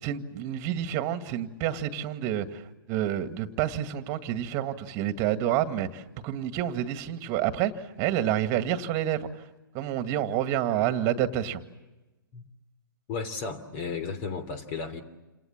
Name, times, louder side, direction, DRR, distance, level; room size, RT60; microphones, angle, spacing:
voice 1, 0.0-9.5 9.7-11.6, right 11 dB, 30° right, 2.1 m, -29 dB
voice 2, 13.1-15.0, left 5 dB, 35° left, 3.1 m, -34 dB
29.0 x 27.0 x 7.4 m
figure-of-eight pair, 125°, 12 cm